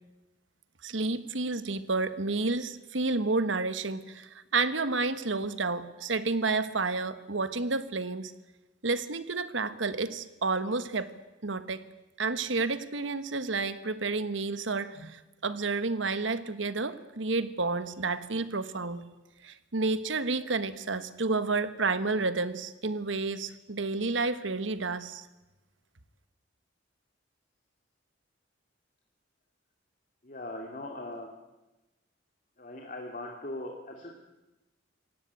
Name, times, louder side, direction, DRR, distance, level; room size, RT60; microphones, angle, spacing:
voice 1, 0.8-8.3 8.8-11.1 11.4-11.8 12.2-19.1 19.4-25.3, right 3 dB, 85° right, 12 dB, 1.4 m, -30 dB
voice 2, 30.2-31.3 32.6-34.1, left 1 dB, 45° left, 2 dB, 2.6 m, -40 dB
27.0 x 17.5 x 8.3 m, 1.1 s
head